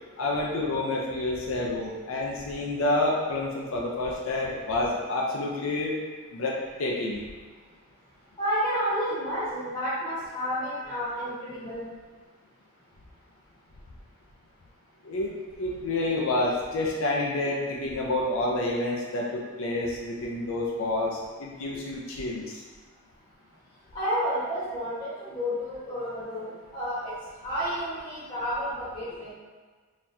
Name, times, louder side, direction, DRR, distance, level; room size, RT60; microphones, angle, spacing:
voice 1, 0.2-6.0 6.3-7.3 15.0-22.6, left 2 dB, 70° left, -2 dB, 0.5 m, -29 dB
voice 2, 8.4-11.9 23.9-27.1 27.4-29.3, equal, 20° left, -12 dB, 1.1 m, -30 dB
3.9 x 2.9 x 2.6 m, 1.4 s
head